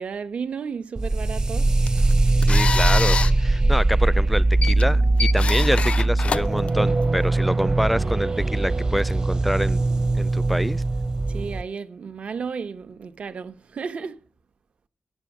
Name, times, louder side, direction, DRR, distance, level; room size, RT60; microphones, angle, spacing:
voice 1, 0.0-1.7 11.3-14.2, right 5 dB, 70° right, 1.0 m, -33 dB
sound 1, 1.0-11.6, right 2 dB, 35° right, 0.8 m, -21 dB
sound 2, 1.6-7.3, left 5 dB, 60° left, 0.5 m, -29 dB
voice 2, 2.5-9.8 10.1-10.8, equal, ahead, 0.4 m, -26 dB
8.4 x 8.1 x 7.3 m
cardioid pair, 80°, 2 cm